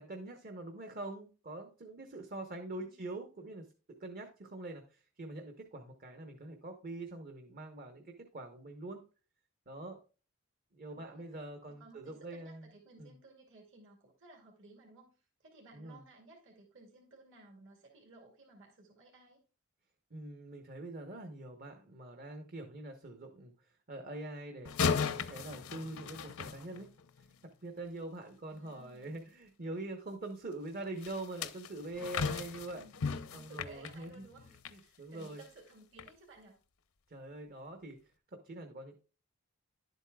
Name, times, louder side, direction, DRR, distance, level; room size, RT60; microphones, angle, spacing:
voice 1, 0.0-9.0 9.7-10.0 10.7-12.7 13.0-13.1 15.7-16.0 20.1-26.9 27.6-32.8 33.3-34.2 34.7-35.4 37.1-38.0 38.3-39.0, right 2 dB, 45° right, 4 dB, 1.0 m, -44 dB
voice 2, 2.7-3.0 10.9-11.3 11.7-19.4 28.5-29.2 32.7-36.6, right 3 dB, 60° right, -1 dB, 2.3 m, -57 dB
sound 1, 24.6-27.2 31.0-34.8 35.2-35.4 36.0-36.1, left 6 dB, 70° left, 0.7 m, -36 dB
11.0 x 8.1 x 2.3 m, 0.36 s
head